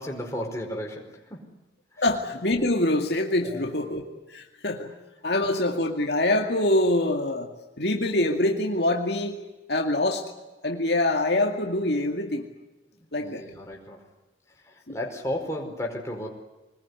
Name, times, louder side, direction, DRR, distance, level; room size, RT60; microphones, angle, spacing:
voice 1, 0.0-1.5 1.9-2.0 3.4-3.7 12.9-14.1 14.5-16.3, left 1 dB, 15° left, 0 dB, 5.0 m, -34 dB
voice 2, 2.0-4.0 4.3-4.9 5.2-7.5 7.8-9.4 9.7-10.2 10.6-12.5 13.1-13.4 14.9-15.0, left 1 dB, 60° left, 2 dB, 2.3 m, -25 dB
24.5 x 20.5 x 9.8 m, 1.1 s
head